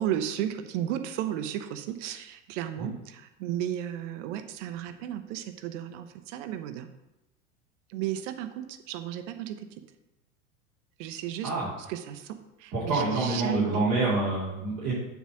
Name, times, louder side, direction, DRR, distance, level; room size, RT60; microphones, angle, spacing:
voice 1, 0.0-6.9 7.9-9.7 11.0-11.5 11.9-13.9, right 11 dB, 60° right, 9 dB, 0.9 m, -34 dB
voice 2, 12.7-14.9, right 3 dB, 40° right, -9 dB, 2.8 m, -27 dB
7.2 x 3.7 x 6.1 m, 0.93 s
hypercardioid pair, 85°, 42 cm